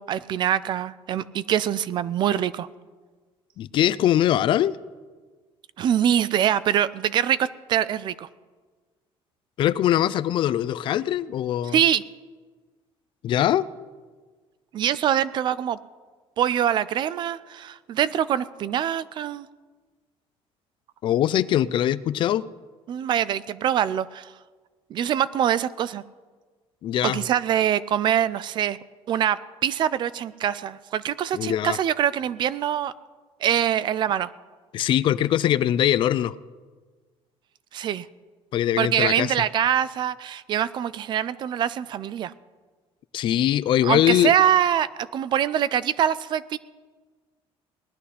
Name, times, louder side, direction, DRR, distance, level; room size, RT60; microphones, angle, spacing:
voice 1, 0.0-2.7 5.8-8.3 11.7-12.0 14.7-15.8 16.4-19.5 22.9-24.3 24.9-26.0 27.0-28.8 29.1-32.9 33.4-34.3 37.7-38.1 38.8-42.3 43.8-44.9 45.1-46.6, right 10 dB, 45° right, 17 dB, 0.4 m, -24 dB
voice 2, 3.6-4.7 9.6-11.8 13.2-13.6 21.0-22.5 26.8-27.2 31.3-31.8 34.7-36.3 38.5-39.3 43.1-44.3, left 11 dB, 50° left, 17 dB, 0.4 m, -22 dB
19.0 x 11.5 x 4.2 m, 1.4 s
cardioid pair, 165°, 11 cm